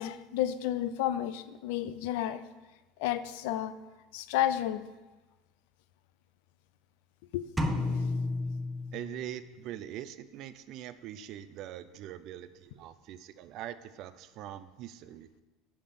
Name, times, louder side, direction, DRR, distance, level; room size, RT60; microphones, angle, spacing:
voice 1, 0.0-2.4 3.0-3.7 4.1-4.8 7.3-7.5, left 12 dB, 75° left, 14 dB, 0.4 m, -31 dB
sound 1, 7.6-9.5, left 2 dB, 5° right, 0.6 m, -32 dB
voice 2, 8.9-15.3, right 12 dB, 50° right, 13 dB, 0.4 m, -43 dB
5.8 x 5.3 x 6.8 m, 1.2 s
cardioid pair, 150°, 0 cm